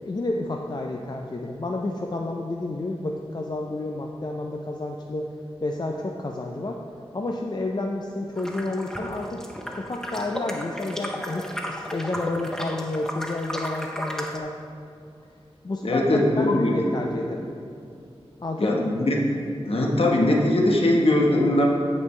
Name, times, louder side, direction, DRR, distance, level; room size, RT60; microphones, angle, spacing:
voice 1, 0.0-5.3 5.6-6.8 7.1-9.4 9.8-14.5 15.6-17.4 18.4-19.0, left 2 dB, 40° left, 1 dB, 0.5 m, -30 dB
sound 1, 8.4-14.4, equal, 5° left, 0.7 m, -34 dB
voice 2, 15.8-16.8 18.6-19.2 19.6-21.7, left 1 dB, 65° left, -1 dB, 1.2 m, -21 dB
14.0 x 5.3 x 3.3 m, 2.5 s
wide cardioid pair, 65°, 11 cm